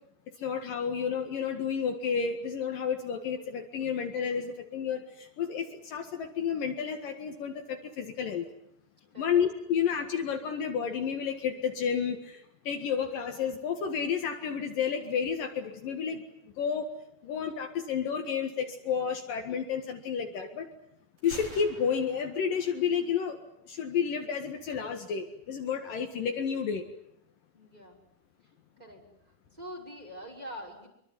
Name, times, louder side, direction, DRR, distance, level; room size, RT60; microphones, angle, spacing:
voice 1, 0.4-8.5 9.2-16.9 17.2-20.7 21.2-23.4 23.7-26.8, left 7 dB, 65° left, 5 dB, 3.3 m, -31 dB
Gunshot gunfire, 21.2-23.1, right 2 dB, 35° right, 6.2 m, -48 dB
voice 2, 27.5-28.0 28.8-30.9, equal, 10° right, 1 dB, 5.8 m, -45 dB
25.0 x 24.0 x 9.7 m, 0.74 s
omnidirectional pair, 4.5 m